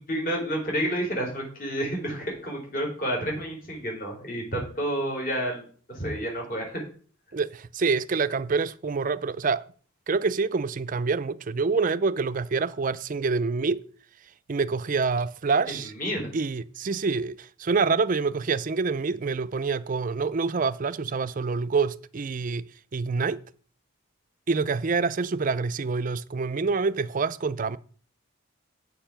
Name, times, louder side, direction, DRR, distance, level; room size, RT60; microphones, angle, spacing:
voice 1, 0.0-6.8 15.7-16.3, equal, 40° left, 3.7 m, -30 dB
voice 2, 7.3-9.7 10.1-13.9 14.5-15.9 16.3-23.4 24.5-27.8, right 4 dB, 40° right, 0.4 m, -26 dB
8.4 x 6.8 x 5.8 m
head